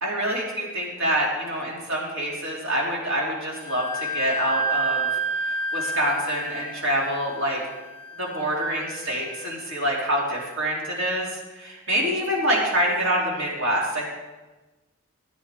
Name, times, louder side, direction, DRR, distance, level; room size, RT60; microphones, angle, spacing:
voice 1, 0.0-5.1 5.7-7.6 8.2-14.0, equal, 60° right, -3 dB, 3.3 m, -26 dB
Wind instrument woodwind instrument, 3.5-10.9, right 2 dB, 20° left, 0.7 m, -31 dB
15.5 x 9.2 x 3.7 m, 1.2 s
head